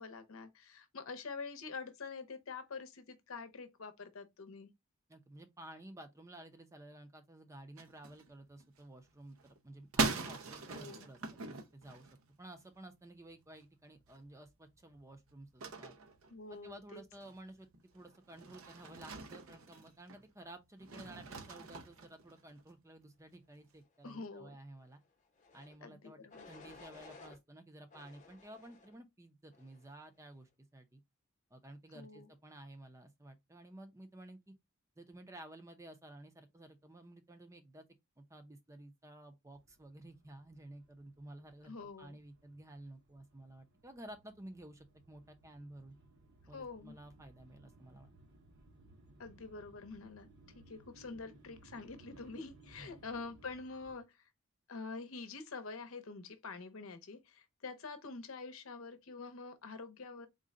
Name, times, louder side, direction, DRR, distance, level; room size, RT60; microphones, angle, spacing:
voice 1, 0.0-4.7 10.7-11.1 16.3-17.0 24.0-24.6 25.8-26.4 31.9-32.3 41.6-42.2 46.5-46.9 49.2-50.3 50.7-54.2 54.7-60.3, left 4 dB, 80° left, 0.7 m, -46 dB
voice 2, 5.1-12.1 12.4-15.9 16.6-25.0 25.5-26.2 26.4-31.0 31.5-34.5 35.0-37.8 38.2-45.9 46.5-48.1 52.8-53.0, right 1 dB, 15° right, 0.5 m, -53 dB
sound 1, 7.8-8.8 9.1-12.7 13.1-13.3 13.6-13.7 13.9-20.3 20.8-22.7, right 4 dB, 85° right, 0.7 m, -41 dB
sound 2, 25.4-25.8 26.3-27.4 27.9-29.0 29.5-30.0, left 3 dB, 35° left, 0.8 m, -56 dB
sound 3, 39.5-54.0, right 2 dB, 55° right, 0.9 m, -62 dB
3.8 x 2.1 x 3.6 m
head